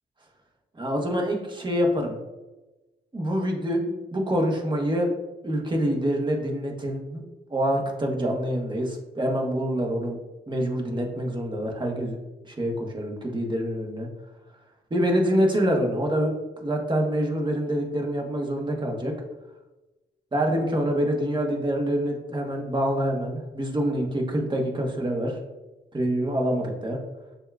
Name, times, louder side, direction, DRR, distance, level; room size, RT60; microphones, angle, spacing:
voice 1, 0.8-2.2 3.1-5.1 5.4-7.2 7.5-10.2 10.5-12.2 12.5-14.1 14.9-16.3 16.6-19.2 20.3-25.4 25.9-27.0, equal, 25° right, 0 dB, 1.1 m, -26 dB
6.6 x 2.5 x 2.3 m, 1.1 s
supercardioid pair, 55°, 20 cm